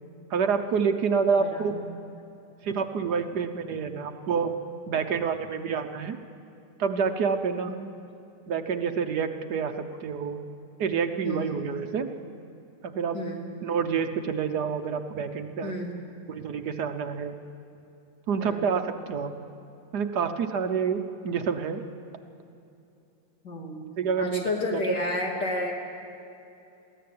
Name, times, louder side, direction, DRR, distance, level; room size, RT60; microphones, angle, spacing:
voice 1, 0.3-1.7 2.6-4.5 4.9-6.2 6.8-7.8 8.5-10.4 10.8-12.1 12.8-13.2 13.6-15.7 16.3-17.4 18.3-19.3 19.9-21.8 24.0-25.0, right 6 dB, 65° right, 7 dB, 1.4 m, -28 dB
voice 2, 1.4-1.9 7.7-7.8 11.2-11.5 13.1-13.4 15.6-16.0 18.4-18.7 23.4-23.8 24.2-25.7, left 2 dB, 65° left, 0 dB, 3.6 m, -31 dB
23.0 x 16.0 x 8.6 m, 2.7 s
omnidirectional pair, 2.0 m